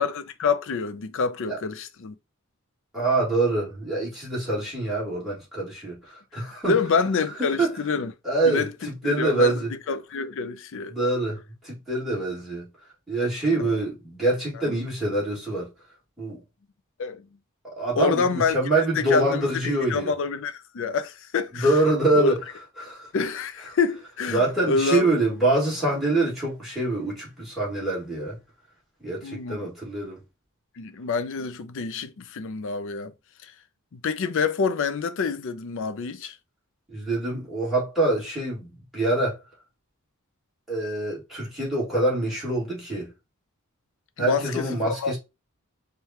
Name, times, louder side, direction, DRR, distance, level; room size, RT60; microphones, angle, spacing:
voice 1, 0.0-2.1 6.4-8.1 8.4-8.7 9.0-11.0 13.6-13.7 14.5-14.7 17.0-17.3 18.0-21.8 22.2-22.3 23.1-25.1 29.2-29.7 30.8-33.1 33.4-33.5 33.9-36.4 44.2-45.2, left 5 dB, 60° left, 0.5 m, -27 dB
voice 2, 2.9-6.8 7.6-7.7 8.2-8.7 9.0-9.7 10.9-12.7 13.1-15.7 16.2-16.4 17.8-20.1 21.5-22.4 22.8-23.1 24.3-28.4 29.0-30.2 36.9-39.4 40.7-43.1 44.2-45.2, right 2 dB, ahead, 2.0 m, -25 dB
4.7 x 2.3 x 2.8 m
head